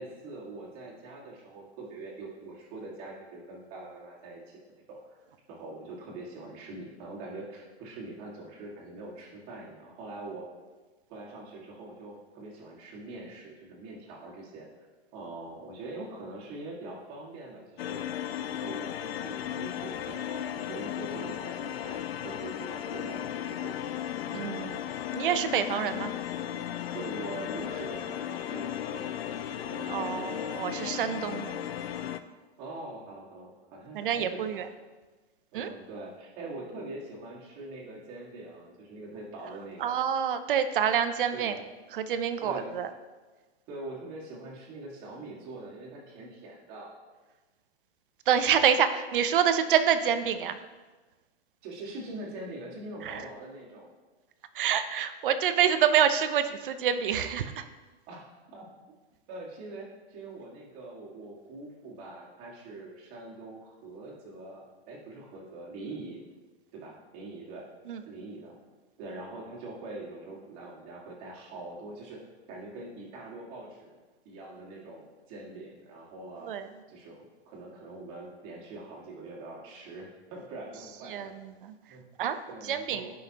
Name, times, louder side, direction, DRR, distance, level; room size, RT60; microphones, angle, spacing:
voice 1, 0.0-5.2 5.5-10.5 11.1-14.7 15.1-18.0 18.6-23.7 24.3-24.7 26.9-29.4 29.7-30.4 32.6-34.7 35.5-40.0 41.3-41.6 42.4-42.7 43.7-46.9 51.6-53.9 58.1-58.7 59.3-66.2 66.7-67.7 68.1-68.5 69.0-72.2 72.5-76.5 76.9-81.3 81.9-82.0 82.5-83.1, right 2 dB, 25° right, -3 dB, 1.9 m, -43 dB
sound 1, 17.8-32.2, left 10 dB, 65° left, 0.6 m, -35 dB
voice 2, 24.3-24.8 25.1-26.1 29.9-31.6 33.9-34.7 35.5-35.7 39.8-41.6 41.9-42.9 48.3-50.6 53.0-53.2 54.5-57.6 67.9-68.0 76.5-76.7 81.1-81.7 82.2-83.1, right 8 dB, 55° right, 10 dB, 0.7 m, -27 dB
15.5 x 5.6 x 2.9 m, 1.3 s
supercardioid pair, 170°, 32 cm